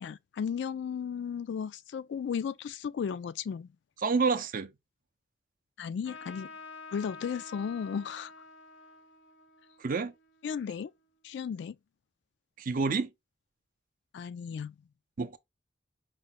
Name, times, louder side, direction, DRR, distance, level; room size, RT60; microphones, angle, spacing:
voice 1, 0.0-3.7 5.8-6.5 6.9-8.3 10.4-10.9 11.2-11.8 14.1-14.7, left 7 dB, 65° left, 0.3 m, -35 dB
voice 2, 4.0-4.7 9.8-10.1 12.6-13.1 15.2-15.4, right 4 dB, 45° right, 0.5 m, -28 dB
Trumpet, 6.0-11.0, left 4 dB, 85° left, 0.7 m, -49 dB
4.9 x 2.2 x 4.0 m
head